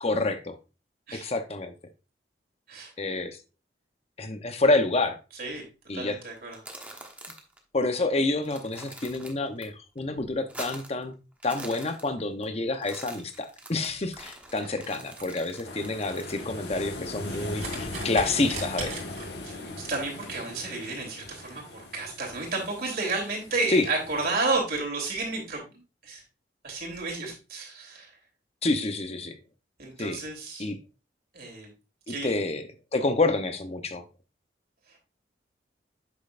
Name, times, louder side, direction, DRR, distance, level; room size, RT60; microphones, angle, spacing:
voice 1, 0.0-0.6 1.1-1.7 3.0-3.4 4.2-5.2 5.9-6.2 7.7-11.1 11.4-19.0 23.7-23.9 28.6-29.4 30.0-30.2 30.6-30.8 32.1-32.7 32.9-34.0, left 2 dB, 35° left, 0.8 m, -28 dB
voice 2, 5.9-6.6 19.4-25.6 26.0-26.2 26.6-28.1 29.8-30.6 31.3-31.7 32.1-32.3, right 3 dB, 55° right, 3.0 m, -31 dB
sound 1, 6.4-7.6 7.9-8.0 8.3-9.6 10.0-11.0 11.3-12.4 12.7-16.5, right 1 dB, 10° right, 1.1 m, -45 dB
sound 2, 13.9-19.6, right 3 dB, 40° right, 2.8 m, -42 dB
sound 3, 15.6-24.3, left 2 dB, 70° left, 1.5 m, -39 dB
8.4 x 6.3 x 2.5 m
head